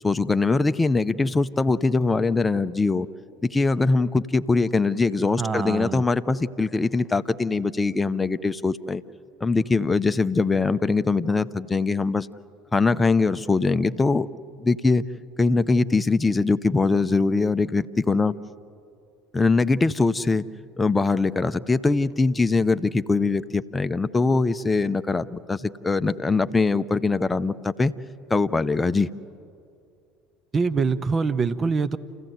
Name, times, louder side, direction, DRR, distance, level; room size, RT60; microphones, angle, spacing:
voice 1, 0.0-3.1 3.4-9.0 9.4-12.3 12.7-14.3 14.6-15.0 15.4-18.3 19.3-20.5 20.8-27.9 28.3-29.1, left 3 dB, 15° left, 11 dB, 0.7 m, -22 dB
voice 2, 5.4-6.0 30.5-32.0, right 4 dB, 30° right, 14 dB, 1.0 m, -24 dB
29.0 x 15.5 x 7.9 m, 2.4 s
figure-of-eight pair, 70°, 0 cm